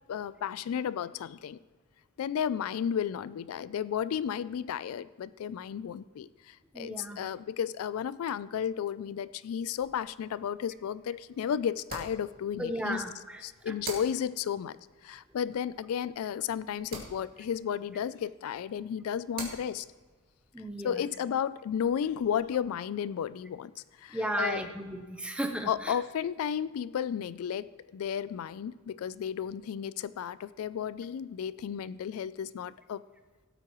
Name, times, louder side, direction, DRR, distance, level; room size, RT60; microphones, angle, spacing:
voice 1, 0.1-1.6 2.2-13.0 13.4-14.8 15.0-19.9 20.8-23.7 24.0-24.6 25.7-33.0, left 8 dB, 75° left, 17 dB, 0.3 m, -33 dB
voice 2, 6.7-7.2 12.6-13.7 20.5-21.0 24.1-26.0, right 1 dB, 5° right, 5 dB, 0.7 m, -35 dB
sound 1, 9.8-22.6, right 3 dB, 45° right, 2.1 m, -49 dB
17.0 x 8.4 x 3.0 m, 1.4 s
head